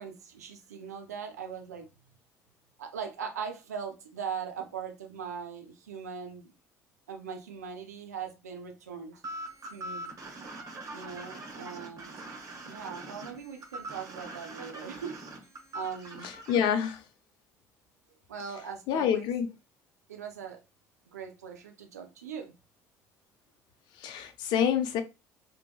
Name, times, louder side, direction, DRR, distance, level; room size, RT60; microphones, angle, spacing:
voice 1, 0.0-1.9 2.8-6.5 7.1-9.2 9.7-10.1 10.9-12.1 12.6-15.1 15.7-16.3 18.3-19.3 20.1-20.6 21.1-22.5, right 6 dB, 85° right, 0.6 m, -40 dB
sound 1, 9.2-16.7, right 2 dB, 45° right, 1.4 m, -42 dB
voice 2, 16.5-17.0 18.9-19.5 24.0-25.0, left 8 dB, 60° left, 0.6 m, -27 dB
3.6 x 2.7 x 2.3 m
hypercardioid pair, 60°, 8 cm